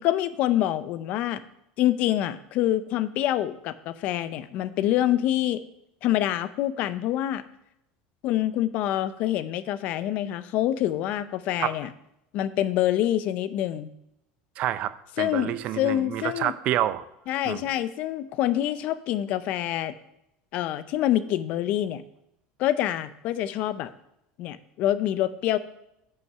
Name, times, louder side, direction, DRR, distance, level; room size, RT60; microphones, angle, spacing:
voice 1, 0.0-1.4 1.8-5.6 6.0-7.4 8.2-11.9 12.3-13.9 15.2-16.5 17.3-19.9 20.5-22.0 22.6-23.9 24.4-25.6, left 12 dB, 55° left, 14 dB, 0.6 m, -26 dB
voice 2, 14.6-17.0 17.5-17.6, right 12 dB, 50° right, 15 dB, 0.5 m, -28 dB
7.8 x 5.5 x 6.8 m, 0.82 s
cardioid pair, 140°, 3 cm